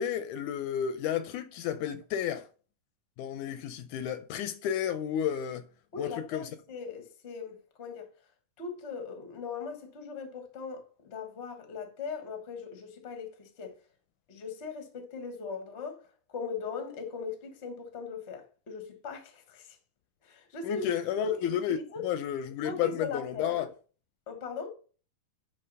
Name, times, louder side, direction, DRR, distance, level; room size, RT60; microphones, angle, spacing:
voice 1, 0.0-2.5 3.2-5.6 6.0-6.5 20.6-21.8 22.0-23.7, left 9 dB, 80° left, 1.9 m, -32 dB
voice 2, 5.9-8.1 8.6-13.7 14.3-16.0 16.3-19.8 20.2-20.9 21.2-21.5 21.9-22.0 22.6-23.7 24.3-24.7, left 5 dB, 55° left, 0.7 m, -39 dB
10.0 x 3.4 x 5.4 m
omnidirectional pair, 3.8 m